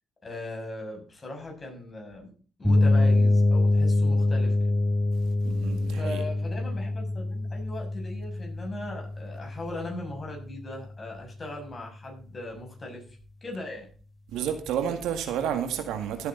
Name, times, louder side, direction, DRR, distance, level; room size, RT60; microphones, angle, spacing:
voice 1, 0.2-2.3 2.6-4.6 5.9-13.0 13.4-13.9, left 2 dB, 30° left, 6.8 m, -39 dB
sound 1, 2.6-10.4, left 2 dB, 5° left, 5.5 m, -25 dB
voice 2, 5.2-6.2 14.3-16.3, right 8 dB, 90° right, 1.9 m, -31 dB
15.0 x 9.0 x 4.0 m
cardioid pair, 90°, 0 cm